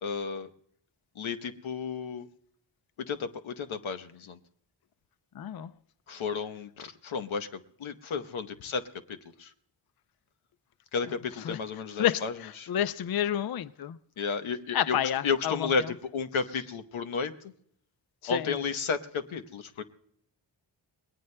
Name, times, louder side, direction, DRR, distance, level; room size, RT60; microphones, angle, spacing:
voice 1, 0.0-0.5 1.2-2.3 3.0-4.4 6.1-9.5 10.9-12.7 14.2-15.0 15.2-17.3 18.3-19.8, left 5 dB, 90° left, 1.0 m, -33 dB
voice 2, 5.4-5.7 11.5-11.6 12.0-14.0 14.7-15.7 18.2-18.6, left 10 dB, 55° left, 0.5 m, -29 dB
28.0 x 20.5 x 2.2 m
wide cardioid pair, 90°, 47 cm